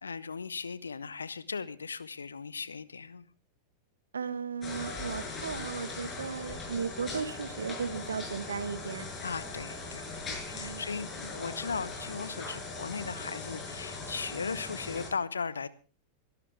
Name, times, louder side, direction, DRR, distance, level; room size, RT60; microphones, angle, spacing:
voice 1, 0.0-3.2 9.2-15.7, left 5 dB, 75° left, 17 dB, 1.0 m, -37 dB
voice 2, 4.1-9.0 10.5-10.8, right 6 dB, 70° right, 12 dB, 1.4 m, -36 dB
sound 1, 4.6-15.1, left 3 dB, 25° left, 6.5 m, -40 dB
23.5 x 12.5 x 3.5 m, 0.36 s
figure-of-eight pair, 90°, 0 cm